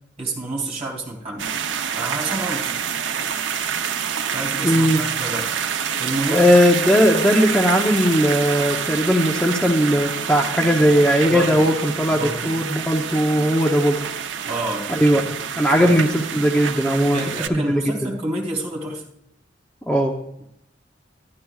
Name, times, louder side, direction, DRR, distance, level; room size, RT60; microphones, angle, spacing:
voice 1, 0.2-1.5 2.0-2.8 4.3-5.5 6.0-6.5 11.3-11.7 12.1-12.6 14.5-14.9 15.6-15.9 17.1-19.0, right 2 dB, 35° right, -2 dB, 2.7 m, -28 dB
sound 1, 1.4-17.5, right 7 dB, 85° right, 0.6 m, -27 dB
voice 2, 4.6-5.0 6.3-14.0 14.9-17.2 17.5-17.7 19.9-20.1, equal, 5° left, 0 dB, 0.7 m, -18 dB
12.5 x 11.5 x 2.3 m, 0.76 s
head